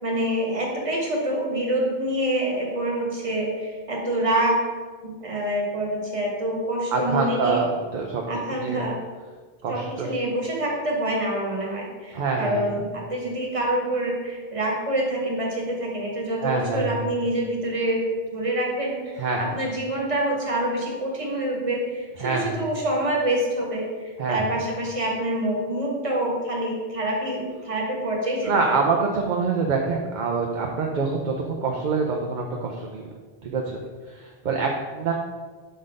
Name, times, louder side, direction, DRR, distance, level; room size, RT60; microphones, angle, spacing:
voice 1, 0.0-4.6 5.0-7.6 8.3-9.0 9.7-18.0 18.3-23.8 24.3-28.5, right 1 dB, 35° right, -2 dB, 1.3 m, -26 dB
voice 2, 6.9-8.2 8.6-8.8 9.6-10.1 12.1-12.6 16.4-17.0 19.2-19.5 22.2-22.6 24.2-24.4 28.4-33.1 33.4-33.8 34.1-35.1, right 4 dB, 55° right, 1 dB, 0.7 m, -25 dB
5.4 x 3.9 x 5.0 m, 1.5 s
omnidirectional pair, 1.0 m